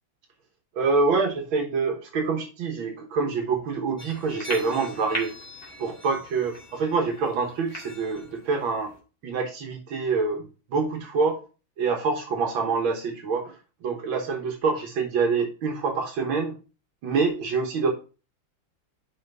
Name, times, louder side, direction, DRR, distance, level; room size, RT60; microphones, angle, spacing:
voice 1, 0.7-5.3 5.8-8.9 9.2-11.4 11.8-16.5 17.0-17.9, right 4 dB, 85° right, 3 dB, 2.0 m, -26 dB
sound 1, 4.0-9.0, right 1 dB, 20° left, 2.2 m, -39 dB
5.6 x 5.0 x 5.4 m, 0.34 s
omnidirectional pair, 2.1 m